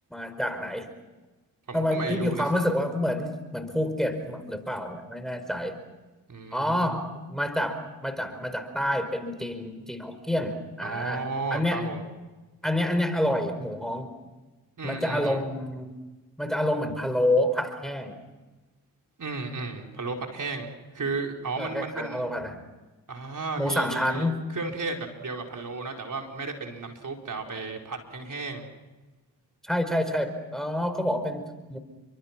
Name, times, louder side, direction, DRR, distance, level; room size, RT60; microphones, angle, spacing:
voice 1, 0.1-0.9 1.7-5.8 6.5-11.9 12.6-14.1 14.8-15.9 16.4-18.2 21.6-22.6 23.6-24.4 29.6-31.8, left 1 dB, ahead, 9 dB, 4.8 m, -28 dB
voice 2, 1.7-2.4 6.3-6.9 10.8-12.0 14.8-15.4 19.2-22.2 23.1-24.3 24.5-28.7, right 3 dB, 50° right, 2 dB, 4.7 m, -34 dB
29.0 x 24.5 x 6.1 m, 1.2 s
supercardioid pair, 50°, 40 cm